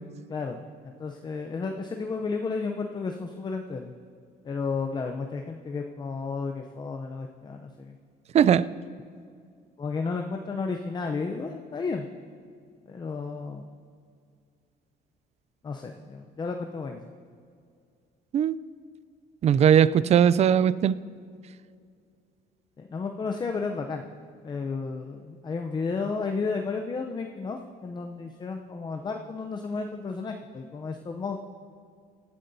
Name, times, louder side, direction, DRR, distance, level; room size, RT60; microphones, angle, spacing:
voice 1, 0.3-3.9 4.4-7.9 9.8-12.1 12.9-13.7 15.6-17.0 22.8-24.1 24.4-31.4, left 4 dB, 25° left, 4 dB, 0.6 m, -32 dB
voice 2, 19.4-21.0, right 9 dB, 40° right, 18 dB, 0.4 m, -19 dB
19.0 x 13.0 x 2.7 m, 2.3 s
cardioid pair, 110°, 17 cm